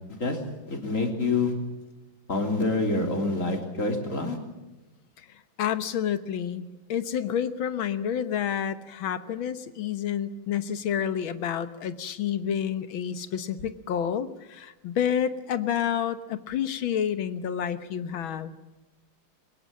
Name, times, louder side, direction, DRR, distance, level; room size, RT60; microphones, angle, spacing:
voice 1, 0.7-1.5 2.3-4.4, left 3 dB, 40° left, 3 dB, 3.6 m, -26 dB
voice 2, 5.6-6.6 6.9-18.5, left 9 dB, 85° left, 12 dB, 2.0 m, -29 dB
23.0 x 20.5 x 7.6 m, 1.1 s
omnidirectional pair, 2.1 m